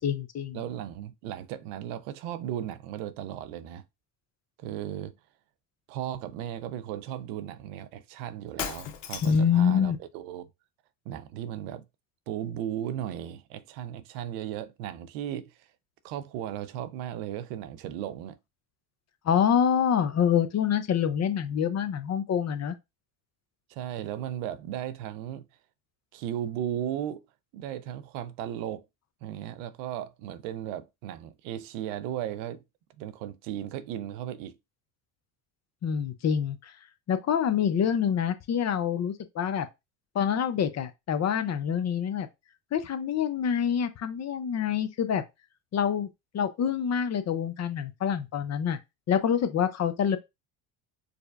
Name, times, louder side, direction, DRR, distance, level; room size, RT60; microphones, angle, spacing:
voice 1, 0.0-0.6 9.2-10.0 19.3-22.7 35.8-36.7 37.1-39.7 40.1-42.3 42.7-45.2 45.7-46.1 46.3-48.8 49.1-50.2, left 8 dB, 35° left, 0.6 m, -26 dB
voice 2, 0.5-3.8 4.6-5.1 5.9-10.5 11.1-11.8 12.3-15.7 16.0-18.4 23.7-25.5 26.1-27.2 27.5-28.9 29.2-32.6 33.0-34.6, right 11 dB, 85° right, 0.6 m, -36 dB
Shatter, 8.6-9.6, left 9 dB, 65° left, 0.8 m, -36 dB
4.9 x 2.2 x 2.4 m
supercardioid pair, 85°, 45 cm